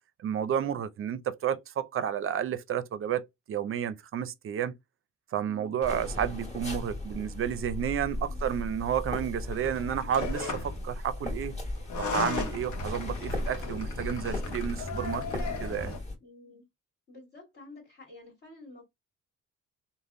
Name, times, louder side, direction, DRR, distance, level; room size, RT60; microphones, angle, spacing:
voice 1, 0.2-4.7 5.3-11.6 12.0-15.2 15.6-16.0, right 9 dB, 45° right, 0.5 m, -31 dB
voice 2, 5.4-5.8 8.3-8.9 16.2-16.7 17.1-18.8, left 2 dB, 45° left, 1.7 m, -50 dB
sound 1, 5.8-16.2, left 1 dB, 20° left, 1.6 m, -36 dB
sound 2, 9.5-10.8 11.8-16.0, left 3 dB, 75° left, 0.9 m, -36 dB
3.4 x 2.1 x 2.5 m
cardioid pair, 90°, 30 cm